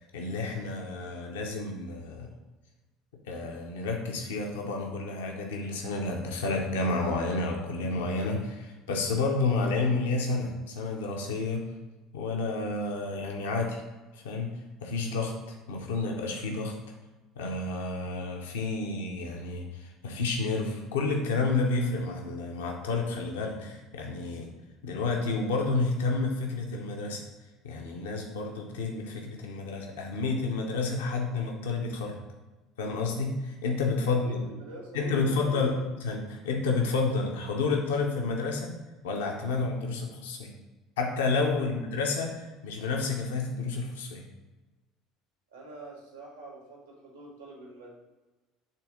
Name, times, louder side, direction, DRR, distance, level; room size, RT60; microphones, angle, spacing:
voice 1, 0.0-2.3 3.2-11.6 12.1-13.8 14.1-14.5 14.8-16.7 17.3-24.5 24.8-27.2 27.6-32.2 32.8-34.4 34.9-35.8 36.0-38.7 39.0-40.5 41.0-44.3, left 3 dB, 75° left, 1 dB, 0.8 m, -30 dB
voice 2, 34.0-35.8 41.5-41.7 45.5-47.9, right 1 dB, 90° right, -1 dB, 1.6 m, -45 dB
5.7 x 3.4 x 5.0 m, 1.2 s
figure-of-eight pair, 65°, 0 cm